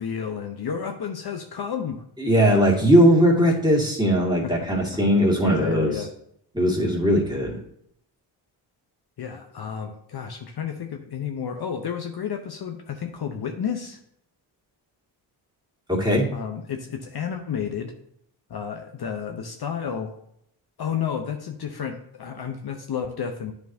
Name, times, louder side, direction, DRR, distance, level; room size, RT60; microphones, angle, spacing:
voice 1, 0.0-2.0 4.4-4.8 5.4-6.1 9.2-14.0 16.3-17.9 18.5-20.2 20.8-23.5, left 7 dB, 50° left, 5 dB, 0.8 m, -31 dB
voice 2, 2.2-5.9 6.5-7.6 15.9-16.3, equal, 10° right, -3 dB, 2.2 m, -19 dB
9.0 x 4.6 x 2.7 m, 0.71 s
cardioid pair, 60°, 48 cm